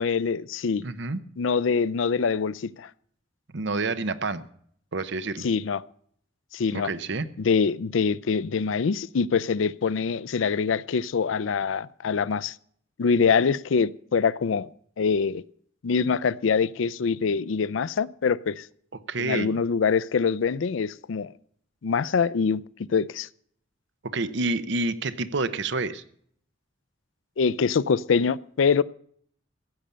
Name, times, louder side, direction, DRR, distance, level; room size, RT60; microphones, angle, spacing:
voice 1, 0.0-0.8 1.4-2.9 5.4-5.8 6.5-6.9 7.4-12.6 13.0-14.7 15.0-15.4 15.8-18.7 19.2-21.3 21.8-22.6 22.9-23.3 27.4-28.8, left 5 dB, 85° left, 0.5 m, -24 dB
voice 2, 0.8-1.2 3.5-4.4 4.9-5.5 6.8-7.3 19.1-19.6 24.0-26.0, right 3 dB, 65° right, 0.9 m, -28 dB
15.0 x 8.8 x 6.7 m
head